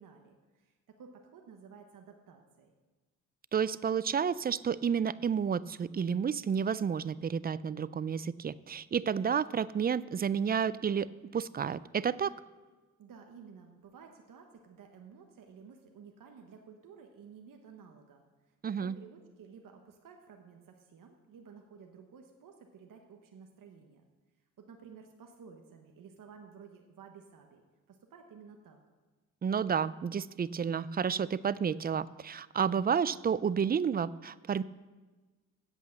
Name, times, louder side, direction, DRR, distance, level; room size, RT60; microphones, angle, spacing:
voice 1, 0.0-2.7 13.0-24.0 24.6-28.8, right 6 dB, 75° right, 3 dB, 1.1 m, -54 dB
voice 2, 3.5-11.1 11.3-12.3 18.6-18.9 29.4-34.6, right 7 dB, 30° right, 18 dB, 0.3 m, -31 dB
8.3 x 8.1 x 7.7 m, 1.3 s
cardioid pair, 90°, 33 cm